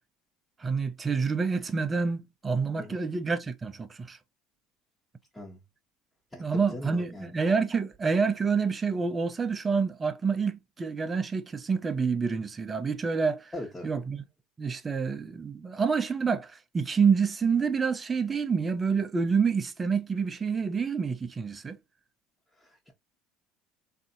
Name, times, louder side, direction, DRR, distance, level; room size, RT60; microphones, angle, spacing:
voice 1, 0.6-4.2 6.4-13.5 13.8-14.2 14.6-21.8, right 5 dB, 25° right, 0.6 m, -28 dB
voice 2, 6.3-7.3 13.5-13.9 22.6-22.9, left 1 dB, 15° left, 1.2 m, -41 dB
3.3 x 2.7 x 2.5 m
supercardioid pair, 85°, 0 cm